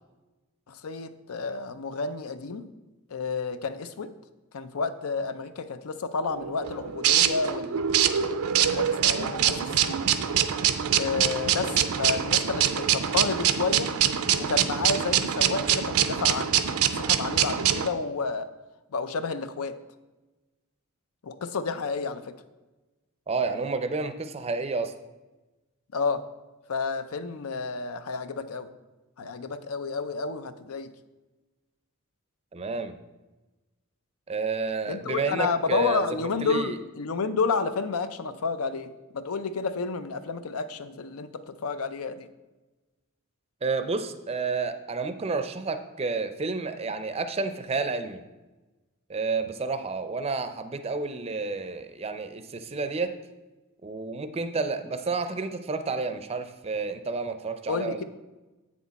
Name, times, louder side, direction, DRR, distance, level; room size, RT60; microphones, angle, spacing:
voice 1, 0.7-2.7 3.1-4.1 4.5-7.8 8.6-10.0 10.9-13.9 14.4-16.6 17.0-18.5 18.9-19.8 21.2-22.3 25.9-26.2 26.7-28.7 29.2-30.9 34.9-42.3 57.7-58.0, left 4 dB, 80° left, 11 dB, 0.5 m, -30 dB
sound 1, 6.3-17.9, right 9 dB, 80° right, 0.5 m, -24 dB
voice 2, 23.3-24.9 32.5-32.9 34.3-36.1 36.4-36.8 43.6-48.2 49.1-53.1 53.8-58.0, right 4 dB, 30° right, 10 dB, 0.5 m, -30 dB
7.9 x 6.3 x 4.1 m, 1.1 s
head